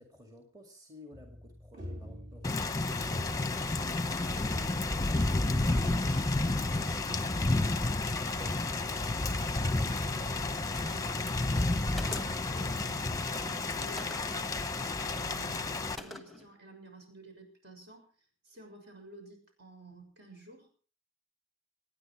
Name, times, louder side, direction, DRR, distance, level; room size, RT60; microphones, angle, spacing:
voice 1, 0.0-7.7 8.5-8.9, left 1 dB, 20° right, 2 dB, 2.2 m, -54 dB
sound 1, 1.1-10.7, left 1 dB, 35° right, 2.9 m, -44 dB
Thunder / Rain, 2.4-16.0, left 2 dB, 15° left, 0.9 m, -31 dB
voice 2, 10.0-18.1 18.4-20.7, right 2 dB, 55° right, 3 dB, 6.6 m, -52 dB
Gunshot gunfire, 12.0-12.6 14.0-14.5 16.0-16.5, left 1 dB, ahead, 1.3 m, -44 dB
26.5 x 9.8 x 4.4 m, 0.41 s
head